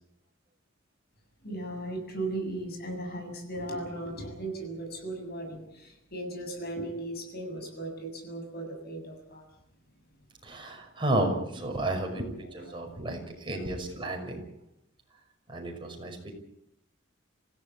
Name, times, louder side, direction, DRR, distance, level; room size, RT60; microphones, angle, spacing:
voice 1, 1.4-9.5 12.0-12.8 13.5-13.7, right 1 dB, 50° left, 4 dB, 7.2 m, -37 dB
voice 2, 10.4-14.5 15.5-16.3, right 1 dB, 25° right, 2 dB, 5.8 m, -32 dB
26.5 x 16.5 x 8.5 m, 0.77 s
head